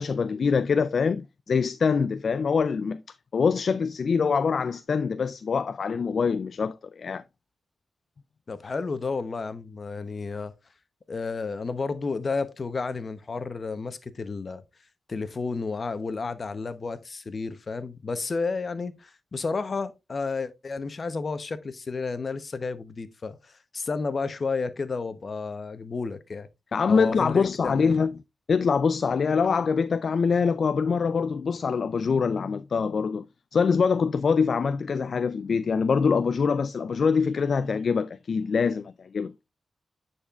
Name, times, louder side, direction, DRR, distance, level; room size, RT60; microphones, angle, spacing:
voice 1, 0.0-3.0 3.3-7.2 26.7-28.2 28.5-33.3 33.5-39.3, left 5 dB, 65° left, 0.3 m, -24 dB
voice 2, 8.5-10.5 11.1-14.6 15.1-23.4 23.7-26.5 26.9-27.9, left 4 dB, 50° left, 0.8 m, -31 dB
10.0 x 4.3 x 2.4 m
cardioid pair, 60°, 0 cm